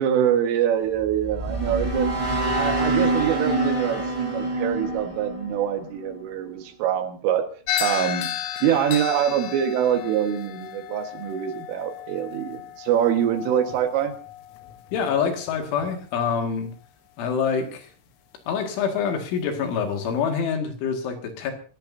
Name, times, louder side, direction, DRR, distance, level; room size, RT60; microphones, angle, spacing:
voice 1, 0.0-2.1 2.6-7.5 7.8-8.3 8.6-14.2, right 9 dB, 75° right, 6 dB, 4.1 m, -24 dB
sound 1, 0.9-6.2, right 2 dB, 40° right, 0.4 m, -26 dB
sound 2, 7.7-16.0, left 11 dB, 90° left, 3.6 m, -34 dB
voice 2, 14.9-16.7 17.2-17.9 18.5-21.5, left 6 dB, 70° left, 4 dB, 4.4 m, -26 dB
27.0 x 14.5 x 2.7 m, 0.40 s
omnidirectional pair, 5.9 m